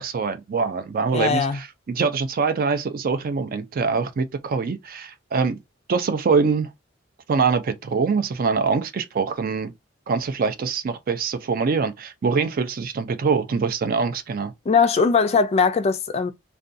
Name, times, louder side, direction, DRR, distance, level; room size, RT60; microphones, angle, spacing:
voice 1, 0.0-5.6 5.9-6.7 7.3-9.7 10.1-14.5, right 5 dB, 50° right, 0.4 m, -24 dB
voice 2, 1.1-1.6 14.7-16.3, left 5 dB, 35° left, 0.3 m, -20 dB
2.5 x 2.2 x 2.5 m
head